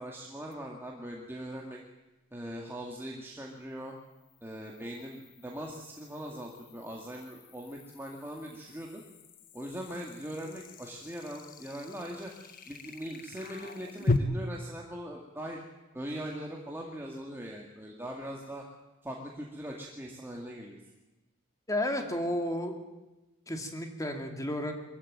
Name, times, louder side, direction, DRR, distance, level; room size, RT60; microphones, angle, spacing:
voice 1, 0.0-1.8 2.3-3.9 4.4-9.0 9.5-12.3 12.7-15.6 15.9-18.6 19.0-20.8, equal, 10° right, -2 dB, 2.1 m, -41 dB
sound 1, 0.5-0.6 4.0-14.2, left 3 dB, 40° left, 1.2 m, -39 dB
voice 2, 21.7-22.7 23.5-24.7, left 1 dB, 15° left, 4 dB, 2.4 m, -32 dB
23.0 x 15.0 x 9.2 m, 1.1 s
head